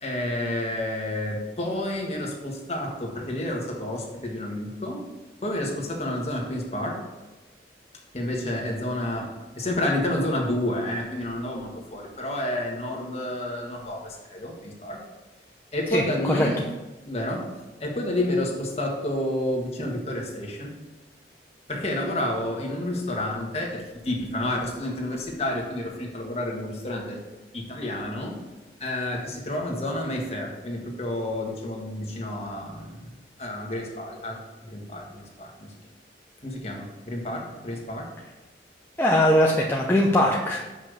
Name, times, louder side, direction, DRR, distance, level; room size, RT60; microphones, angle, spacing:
voice 1, 0.0-5.0 5.4-7.0 8.1-15.0 15.7-16.6 17.1-17.4 17.8-20.7 21.7-27.2 27.5-28.4 28.8-33.1 33.4-35.7 36.4-38.1, left 1 dB, 35° left, -1 dB, 1.5 m, -30 dB
voice 2, 15.9-16.5 39.0-40.6, left 1 dB, 10° left, -2 dB, 0.6 m, -21 dB
6.6 x 5.5 x 6.5 m, 1.2 s
head